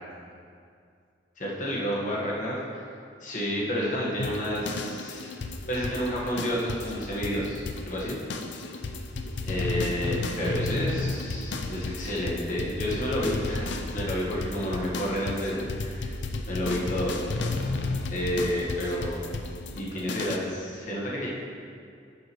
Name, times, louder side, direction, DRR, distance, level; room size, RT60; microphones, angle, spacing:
voice 1, 1.4-2.8 3.2-5.3 5.7-8.2 9.5-16.1 16.5-17.2 18.1-19.2 19.7-21.3, equal, 45° left, -5 dB, 1.4 m, -30 dB
sound 1, 4.2-20.4, left 3 dB, 75° left, 0.6 m, -33 dB
10.0 x 7.6 x 3.1 m, 2.3 s
head